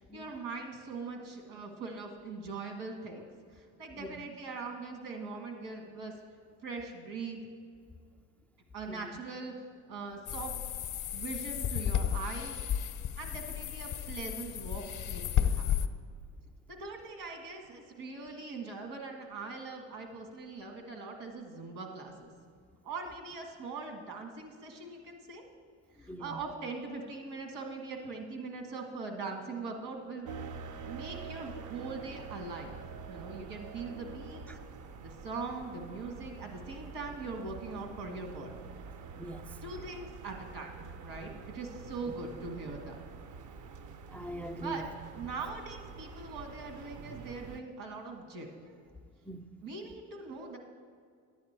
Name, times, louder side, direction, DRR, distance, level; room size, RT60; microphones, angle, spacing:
voice 1, 0.0-3.2 3.5-6.1 6.6-7.4 8.7-9.5 9.9-10.5 11.1-12.6 13.2-15.7 16.7-22.3 22.8-25.4 26.0-30.3 30.9-32.8 33.1-34.4 35.0-38.6 39.6-40.7 41.0-43.0 44.6-44.8 45.1-48.9 49.6-50.6, right 4 dB, 70° right, 3 dB, 1.9 m, -41 dB
voice 2, 3.9-4.2 8.9-9.1 26.1-26.4 33.3-33.4 34.5-34.6 39.2-39.5 44.1-44.9 49.3-49.6, right 1 dB, 5° left, 6 dB, 0.3 m, -42 dB
sound 1, 10.3-15.9, left 9 dB, 45° left, 0.7 m, -33 dB
sound 2, 30.3-47.6, right 5 dB, 50° right, 0.7 m, -46 dB
11.0 x 8.5 x 4.5 m, 2.2 s
hypercardioid pair, 70°, 41 cm